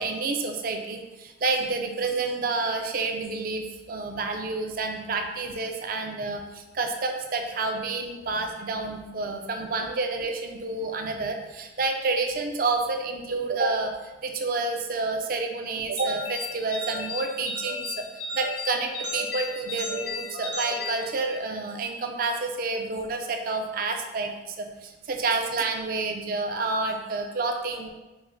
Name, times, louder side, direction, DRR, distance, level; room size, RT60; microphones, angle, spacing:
voice 1, 0.0-13.9 14.2-18.0 18.3-27.9, right 3 dB, 50° right, 4 dB, 0.5 m, -29 dB
sound 1, 16.0-21.7, left 2 dB, 75° left, 1.0 m, -35 dB
5.2 x 2.0 x 4.6 m, 1.1 s
head